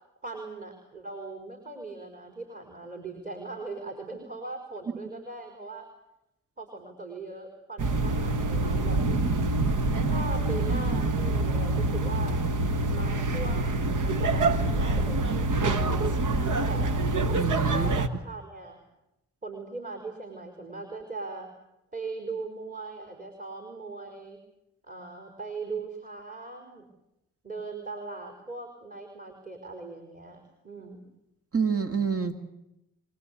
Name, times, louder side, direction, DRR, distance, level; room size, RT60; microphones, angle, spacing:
voice 1, 0.2-5.9 6.6-9.1 10.1-12.4 12.9-16.2 16.7-17.0 17.7-18.8 19.4-21.5 21.9-24.4 24.9-26.9 27.4-31.0, right 3 dB, 25° right, 4 dB, 4.6 m, -39 dB
sound 1, 7.8-18.1, right 2 dB, 60° right, 1.5 m, -26 dB
voice 2, 17.3-17.9 31.5-32.4, right 6 dB, 40° right, 8 dB, 2.3 m, -27 dB
25.0 x 19.0 x 8.5 m, 0.89 s
supercardioid pair, 45°, 34 cm